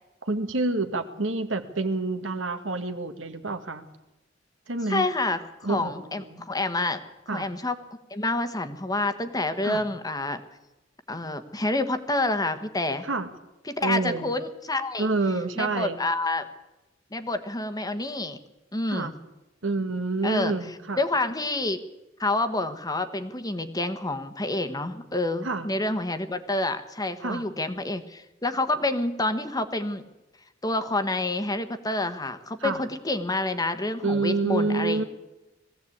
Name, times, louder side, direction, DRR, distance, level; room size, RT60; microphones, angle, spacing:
voice 1, 0.2-3.8 4.7-5.1 5.6-6.4 7.3-7.5 9.6-9.8 13.0-13.3 13.8-14.3 15.0-16.0 18.9-19.1 19.6-21.0 25.4-25.7 27.2-27.5 32.6-32.8 34.0-35.0, right 3 dB, 80° right, 8 dB, 1.7 m, -28 dB
voice 2, 4.9-7.0 7.3-7.7 8.1-10.4 11.1-13.0 13.7-15.1 15.6-16.5 17.1-18.4 18.7-19.1 20.2-20.5 21.0-21.8 22.2-30.0 30.6-35.0, left 2 dB, 20° left, 9 dB, 1.3 m, -28 dB
20.5 x 15.5 x 8.6 m, 0.98 s
head